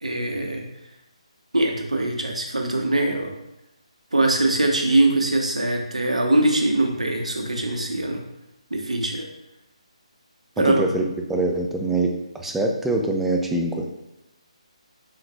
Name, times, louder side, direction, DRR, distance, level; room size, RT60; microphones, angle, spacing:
voice 1, 0.0-0.6 1.5-3.4 4.1-8.2 8.7-9.3 10.6-10.8, right 2 dB, 80° right, 2 dB, 0.8 m, -22 dB
voice 2, 10.6-11.0 11.3-13.9, right 2 dB, 5° right, 2 dB, 0.4 m, -24 dB
5.6 x 3.9 x 2.2 m, 0.89 s
figure-of-eight pair, 145°, 4 cm